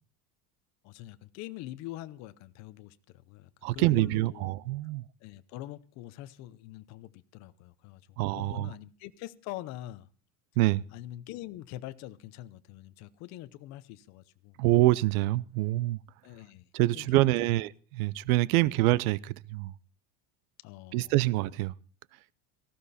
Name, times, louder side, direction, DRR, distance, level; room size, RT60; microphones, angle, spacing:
voice 1, 0.8-4.6 5.2-10.1 10.9-14.6 16.2-17.6 18.5-18.7 20.6-21.2, left 15 dB, 40° left, 0.8 m, -44 dB
voice 2, 3.6-5.0 8.2-8.7 10.6-10.8 14.6-16.0 16.7-19.7 20.9-21.7, right 18 dB, 75° right, 0.7 m, -26 dB
18.5 x 15.0 x 4.2 m
cardioid pair, 175°, 43 cm